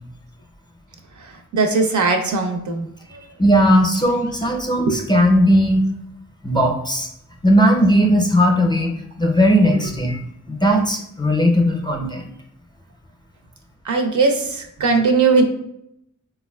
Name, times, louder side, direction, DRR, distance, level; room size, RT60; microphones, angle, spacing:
voice 1, 1.2-2.9 4.8-5.0 13.8-15.4, right 4 dB, 65° right, 4 dB, 0.5 m, -19 dB
voice 2, 3.4-5.8 6.4-7.1 7.4-10.2 10.5-12.3, equal, 15° left, 2 dB, 0.5 m, -17 dB
3.6 x 2.3 x 2.2 m, 0.76 s
cardioid pair, 50°, 32 cm